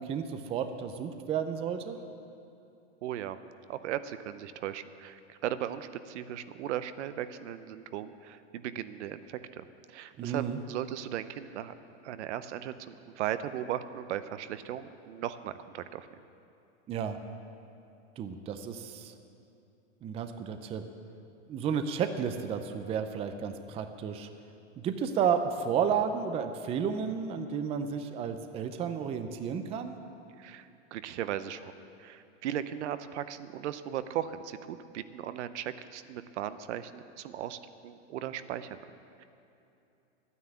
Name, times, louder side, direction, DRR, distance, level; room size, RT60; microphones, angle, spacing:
voice 1, 0.0-2.0 10.2-10.6 16.9-17.2 18.2-19.1 20.0-20.8 21.5-24.3 24.8-29.9, right 7 dB, 15° right, 8 dB, 0.5 m, -32 dB
voice 2, 3.0-3.4 3.7-11.7 12.0-16.1 30.4-31.7 32.0-38.8 39.2-39.3, right 11 dB, 70° right, 12 dB, 0.8 m, -37 dB
11.0 x 9.7 x 8.2 m, 2.7 s
hypercardioid pair, 135°, 36 cm